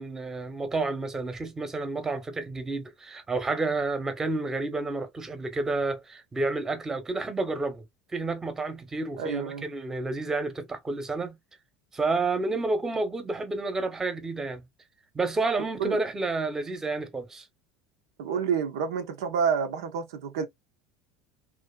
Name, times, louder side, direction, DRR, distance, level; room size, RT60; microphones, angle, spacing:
voice 1, 0.0-7.8 8.1-11.4 11.9-14.6 15.1-17.5, right 3 dB, 20° right, 0.8 m, -30 dB
voice 2, 9.2-9.7 15.8-16.0 18.2-20.5, right 6 dB, 80° right, 0.5 m, -28 dB
2.5 x 2.4 x 2.2 m
hypercardioid pair, 85°, 2 cm